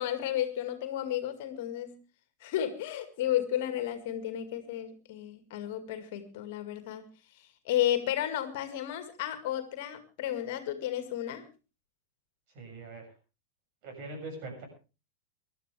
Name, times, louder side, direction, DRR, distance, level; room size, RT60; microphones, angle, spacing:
voice 1, 0.0-2.0 2.4-7.0 7.7-11.4, left 11 dB, 50° left, 9 dB, 2.1 m, -32 dB
voice 2, 12.5-13.1 13.8-14.6, right 2 dB, 45° right, 4 dB, 7.1 m, -42 dB
24.0 x 12.0 x 3.5 m, 0.32 s
figure-of-eight pair, 90°, 0 cm